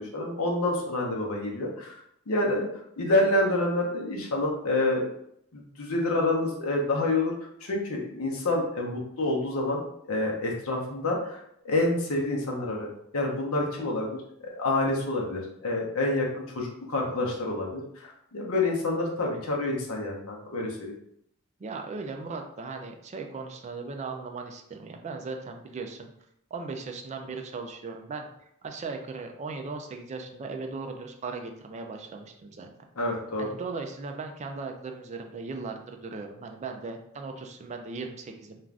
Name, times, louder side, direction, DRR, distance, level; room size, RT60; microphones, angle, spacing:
voice 1, 0.0-1.9 2.3-2.7 3.0-5.1 5.5-7.3 7.6-12.9 13.1-21.0 33.0-33.5, left 2 dB, 75° left, -1 dB, 0.7 m, -28 dB
voice 2, 21.6-26.1 26.5-28.3 28.6-32.7 33.4-38.6, right 4 dB, 30° right, 4 dB, 0.3 m, -37 dB
2.4 x 2.4 x 3.2 m, 0.74 s
head